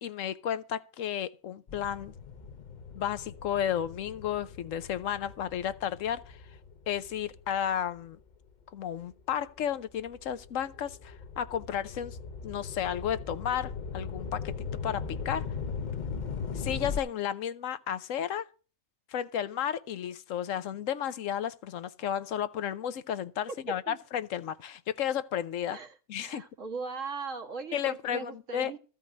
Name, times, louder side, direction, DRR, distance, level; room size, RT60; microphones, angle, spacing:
voice 1, 0.0-2.1 2.9-6.4 6.9-8.2 8.7-12.2 12.4-14.5 14.8-15.5 16.5-18.5 19.1-25.8 26.1-26.4 27.7-28.7, left 9 dB, 80° left, 1.1 m, -33 dB
sound 1, 1.7-8.4 9.0-17.0, left 6 dB, 45° left, 0.8 m, -39 dB
voice 2, 25.7-28.8, right 4 dB, 75° right, 2.0 m, -39 dB
14.0 x 5.3 x 9.0 m
omnidirectional pair, 1.3 m